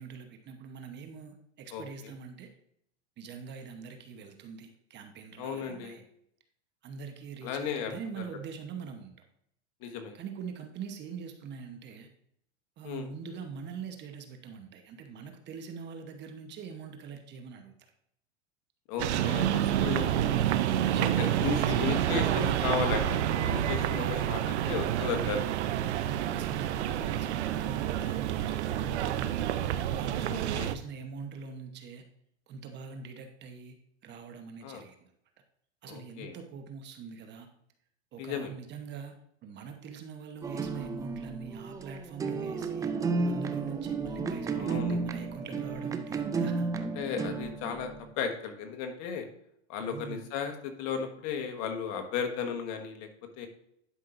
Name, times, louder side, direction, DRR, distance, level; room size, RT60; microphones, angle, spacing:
voice 1, 0.0-2.5 3.2-6.0 6.8-9.1 10.1-12.1 12.8-17.9 19.5-22.9 23.9-24.6 26.0-29.5 29.9-32.0 32.5-35.1 35.8-37.5 38.1-42.9 43.3-46.7 49.8-50.3, right 6 dB, 30° right, 6 dB, 1.0 m, -43 dB
voice 2, 1.7-2.1 5.4-6.0 7.4-7.9 9.8-10.2 12.8-13.1 18.9-20.3 21.2-24.4 24.7-25.4 30.3-30.7 34.6-34.8 35.9-36.4 38.2-38.5 44.5-45.0 46.9-47.9 48.2-49.3 49.7-53.1 53.4-53.5, left 6 dB, 50° left, 5 dB, 1.5 m, -35 dB
sound 1, 19.0-30.7, right 11 dB, 80° right, 0.6 m, -28 dB
sound 2, 40.4-48.1, right 4 dB, 10° right, 0.3 m, -33 dB
11.0 x 5.6 x 2.6 m, 0.72 s
hypercardioid pair, 120°, 33 cm